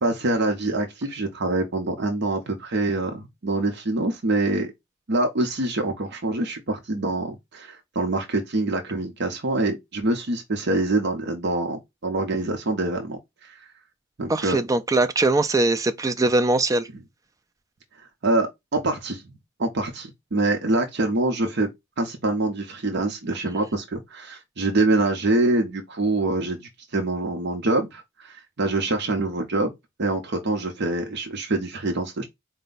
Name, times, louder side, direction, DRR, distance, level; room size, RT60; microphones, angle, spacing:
voice 1, 0.0-4.7 5.1-13.7 14.2-14.6 18.2-21.7 22.0-29.7 30.0-32.2, right 2 dB, 55° right, 0.7 m, -25 dB
voice 2, 14.3-16.9, right 2 dB, 15° right, 0.4 m, -21 dB
4.3 x 2.2 x 3.8 m
head